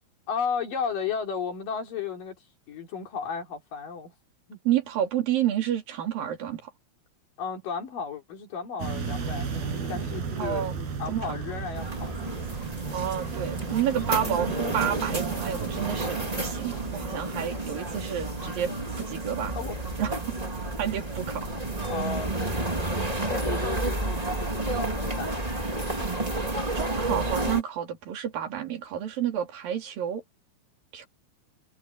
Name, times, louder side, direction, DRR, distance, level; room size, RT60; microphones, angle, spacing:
voice 1, 0.3-2.4 2.7-4.1 4.5-4.6 7.4-12.1 19.5-19.8 21.9-22.5 23.2-25.6, left 6 dB, 65° left, 5.0 m, -34 dB
voice 2, 4.7-6.7 10.4-10.7 11.1-11.4 12.9-18.7 19.0-19.6 20.0-20.2 20.8-21.5 26.7-30.2 30.9-31.1, right 10 dB, 70° right, 4.2 m, -30 dB
sound 1, 8.8-25.1, right 5 dB, 85° right, 6.7 m, -36 dB
sound 2, 11.8-27.6, right 2 dB, 15° right, 2.0 m, -31 dB
omnidirectional pair, 4.3 m